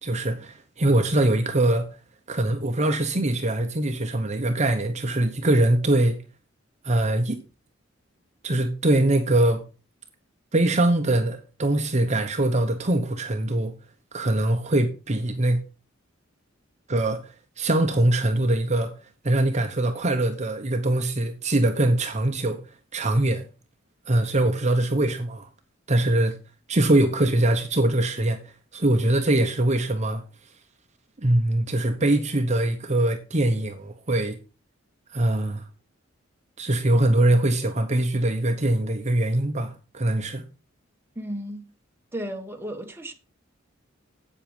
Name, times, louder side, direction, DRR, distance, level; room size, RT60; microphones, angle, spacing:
voice 1, 0.0-1.9 2.3-6.2 6.8-7.4 8.4-9.6 10.5-13.7 14.1-15.6 16.9-18.9 19.2-22.6 22.9-23.5 24.1-25.5 25.9-26.4 26.7-28.4 28.7-30.2 31.2-34.4 35.1-35.6 36.6-40.5, right 1 dB, 35° right, 1.0 m, -22 dB
voice 2, 41.1-41.7 42.1-43.1, equal, 10° right, 1.4 m, -34 dB
8.5 x 7.8 x 5.2 m
head